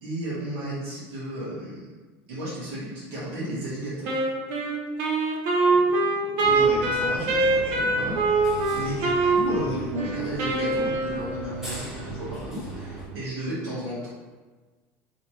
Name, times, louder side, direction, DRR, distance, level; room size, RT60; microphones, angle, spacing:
voice 1, 0.0-1.9 2.3-4.2 5.6-14.1, right 1 dB, 85° right, -9 dB, 1.4 m, -33 dB
Wind instrument woodwind instrument, 4.0-11.5, right 3 dB, 65° right, 0.6 m, -24 dB
sound 1, 6.4-13.1, right 2 dB, 10° right, 1.2 m, -39 dB
3.2 x 2.9 x 2.9 m, 1.3 s
cardioid pair, 140°, 6 cm